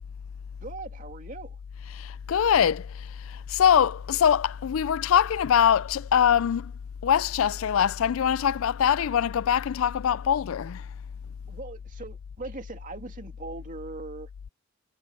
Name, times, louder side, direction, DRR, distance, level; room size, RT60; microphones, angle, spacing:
voice 1, 0.6-1.6 11.5-14.3, right 3 dB, 40° right, 2.5 m, -40 dB
voice 2, 1.9-6.7 7.0-10.8, left 8 dB, 80° left, 0.4 m, -23 dB
head